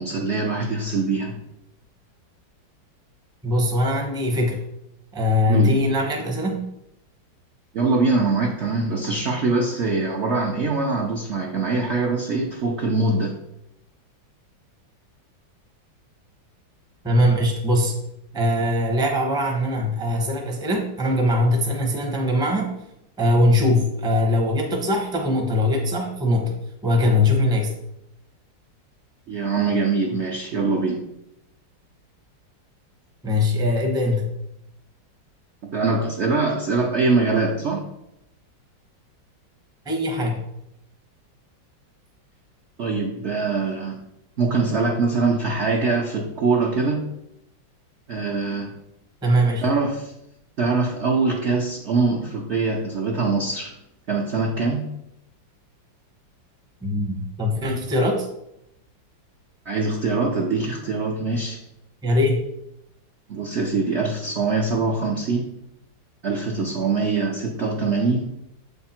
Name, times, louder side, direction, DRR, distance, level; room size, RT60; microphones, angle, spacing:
voice 1, 0.0-1.4 5.5-5.7 7.7-13.3 29.3-31.0 35.6-37.8 42.8-44.0 44.4-47.0 48.1-48.7 49.6-50.1 50.6-53.7 54.1-54.9 59.7-61.6 63.3-65.5 66.2-68.3, right 3 dB, 70° right, 0 dB, 0.6 m, -23 dB
voice 2, 3.4-4.6 5.1-6.7 17.0-18.0 18.3-22.7 23.2-26.6 26.8-27.7 33.2-34.4 39.8-40.4 49.2-49.7 56.8-58.3 62.0-62.4, left 1 dB, 5° right, 1 dB, 0.5 m, -21 dB
7.6 x 3.5 x 4.3 m, 0.83 s
omnidirectional pair, 2.1 m